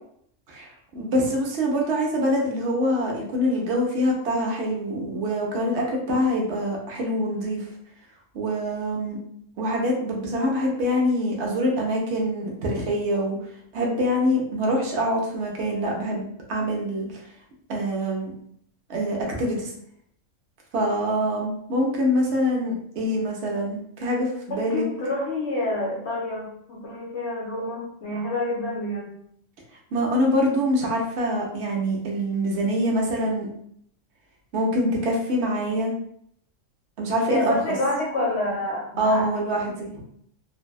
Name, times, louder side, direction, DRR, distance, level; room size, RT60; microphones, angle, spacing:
voice 1, 0.5-7.7 8.3-9.2 9.6-13.4 13.7-17.2 17.7-18.3 18.9-19.7 20.7-24.8 29.9-33.5 34.5-35.9 37.0-37.6 39.0-40.0, equal, 65° right, -1 dB, 0.9 m, -25 dB
voice 2, 24.5-29.2 37.3-39.7, left 2 dB, 65° left, -3 dB, 0.8 m, -28 dB
2.6 x 2.1 x 2.2 m, 0.68 s
omnidirectional pair, 1.3 m